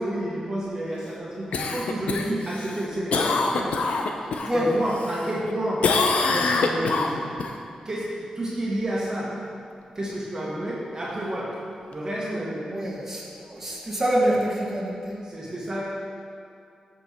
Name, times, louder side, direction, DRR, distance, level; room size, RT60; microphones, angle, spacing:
voice 1, 0.0-3.8 4.5-5.9 6.2-7.3 7.8-9.4 9.9-11.6 11.9-12.7 15.2-16.1, right 1 dB, 30° right, -6 dB, 1.7 m, -30 dB
Cough, 1.5-4.5 4.9-5.5 5.8-7.5 11.9-12.0, left 4 dB, 85° left, 0.7 m, -25 dB
voice 2, 12.7-15.2, equal, 15° right, -5 dB, 1.9 m, -26 dB
14.0 x 5.4 x 4.5 m, 2.4 s
wide cardioid pair, 100°, 2 cm